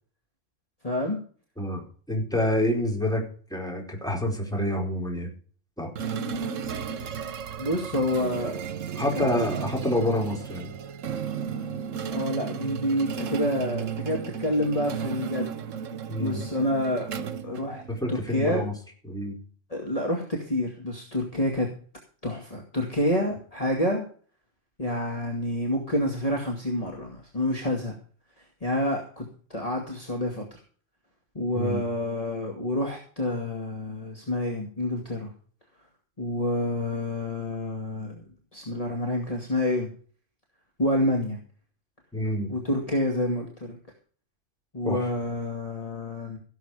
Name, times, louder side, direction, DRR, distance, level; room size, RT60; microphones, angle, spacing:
voice 1, 0.8-1.2 7.6-8.5 9.2-9.4 12.1-15.6 16.2-17.1 17.4-17.8 18.1-18.7 19.7-21.7 22.2-24.1 24.8-27.9 28.6-29.3 29.5-30.6 31.4-35.3 36.2-38.2 38.5-39.9 40.8-41.4 42.5-43.8 44.7-46.4, left 1 dB, 30° left, 0 dB, 2.3 m, -28 dB
voice 2, 2.1-3.2 3.5-5.3 5.8-5.9 8.9-10.7 16.1-16.4 17.9-18.7 19.0-19.4 31.5-31.8 42.1-42.5 44.8-45.1, left 1 dB, 5° left, 0 dB, 4.6 m, -27 dB
sound 1, 6.0-18.2, right 7 dB, 80° right, 1.3 m, -34 dB
16.5 x 8.1 x 5.0 m, 0.43 s
omnidirectional pair, 1.3 m